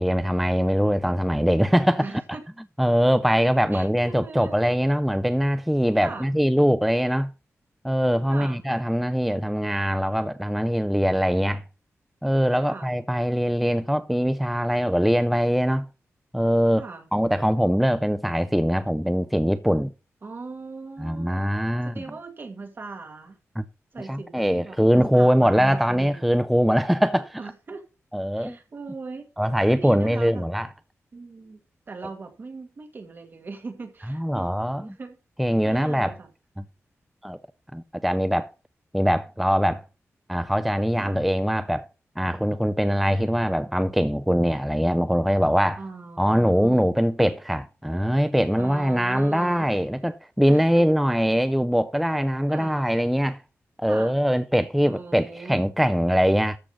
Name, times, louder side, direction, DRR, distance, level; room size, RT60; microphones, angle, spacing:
voice 1, 0.0-2.1 2.8-7.3 7.8-11.6 12.2-15.9 16.3-19.9 21.0-21.9 23.6-23.7 24.0-27.4 28.1-28.6 29.4-30.7 34.1-35.0 35.4-36.2 36.6-36.7 37.2-37.4 37.7-38.5 38.9-39.9 40.3-41.9 42.2-45.8 46.2-53.4 53.8-56.6, equal, ahead, 0.4 m, -22 dB
voice 2, 2.0-2.4 3.7-4.6 6.0-6.4 8.3-8.6 12.6-12.9 16.8-17.1 20.2-21.4 21.8-23.4 23.9-26.5 27.4-27.8 28.3-29.3 29.7-30.5 31.1-31.6 31.9-34.5 34.8-35.2 35.6-36.3 41.0-41.2 45.8-46.8 48.6-49.9 50.5-50.8 52.5-52.7 53.9-54.2 54.8-55.6, right 4 dB, 40° right, 2.3 m, -39 dB
13.5 x 5.1 x 5.5 m
wide cardioid pair, 145°, 5 cm